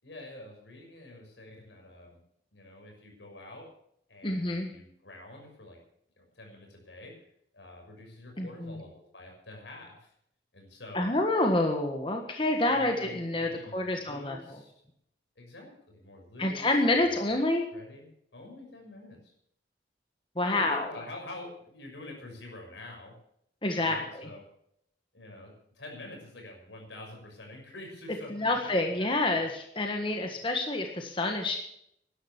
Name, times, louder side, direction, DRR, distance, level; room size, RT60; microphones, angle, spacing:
voice 1, 0.0-2.2 2.5-3.7 4.1-5.8 6.2-7.1 7.5-10.1 10.5-11.1 12.7-14.7 15.4-16.7 17.0-17.2 17.7-19.3 20.4-23.1 23.8-24.4 25.1-29.1, left 1 dB, 85° left, 1 dB, 6.1 m, -47 dB
voice 2, 4.2-4.7 8.4-8.8 10.9-14.4 16.4-17.6 20.3-20.9 23.6-24.3 28.3-31.6, left 2 dB, 30° left, 3 dB, 1.5 m, -28 dB
12.5 x 11.5 x 7.1 m, 0.72 s
head